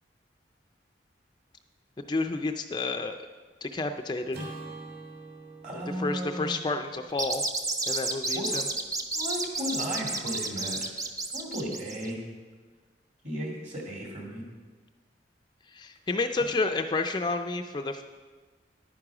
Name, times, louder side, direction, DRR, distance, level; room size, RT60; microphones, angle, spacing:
voice 1, 2.1-3.2 3.6-4.5 6.0-7.4 7.9-8.7 15.7-18.0, left 3 dB, 25° left, 6 dB, 0.3 m, -30 dB
Acoustic guitar / Strum, 4.3-8.7, right 3 dB, 60° right, 2.5 m, -46 dB
voice 2, 5.6-6.6 8.3-8.5 9.1-10.9 11.3-12.2 13.2-14.4, equal, 40° right, -1 dB, 2.4 m, -35 dB
sound 1, 7.1-12.1, right 3 dB, 20° right, 0.6 m, -31 dB
10.5 x 9.5 x 4.9 m, 1.4 s
head